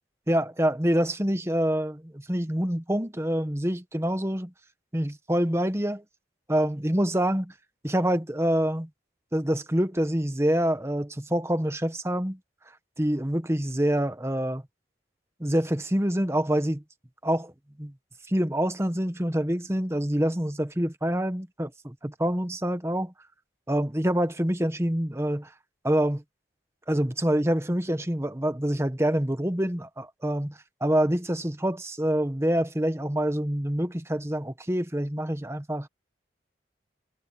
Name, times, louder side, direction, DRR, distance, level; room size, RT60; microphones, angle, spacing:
voice 1, 0.3-4.5 4.9-6.0 6.5-7.5 7.8-8.9 9.3-12.4 13.0-14.6 15.4-16.8 17.2-17.5 17.8-17.9 18.3-23.1 23.7-25.5 25.8-26.2 26.9-35.9, equal, 15° right, 1.2 m, -26 dB
head